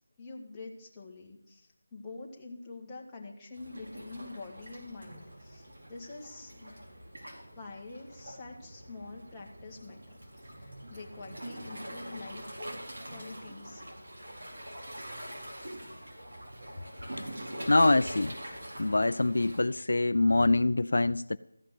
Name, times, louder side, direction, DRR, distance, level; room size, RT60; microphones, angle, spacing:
voice 1, 0.2-6.7 7.5-10.2 10.6-12.4 13.0-13.8, left 3 dB, 10° left, 1.6 m, -46 dB
Waves surf, 3.5-19.6, right 1 dB, 65° right, 4.0 m, -44 dB
voice 2, 17.7-18.4 18.8-21.4, left 2 dB, 70° left, 0.3 m, -24 dB
14.0 x 5.9 x 7.7 m
figure-of-eight pair, 170°, 0 cm